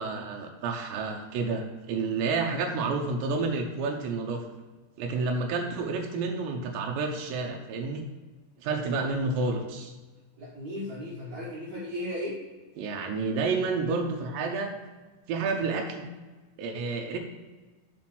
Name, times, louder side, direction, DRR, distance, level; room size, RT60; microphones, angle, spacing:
voice 1, 0.0-4.4 5.0-8.1 8.6-9.9 12.8-14.7 15.3-16.1 16.6-17.2, right 4 dB, 85° right, 2 dB, 3.0 m, -30 dB
voice 2, 10.4-12.4, left 1 dB, 60° right, -6 dB, 2.0 m, -35 dB
7.5 x 4.8 x 6.0 m, 1.3 s
omnidirectional pair, 5.0 m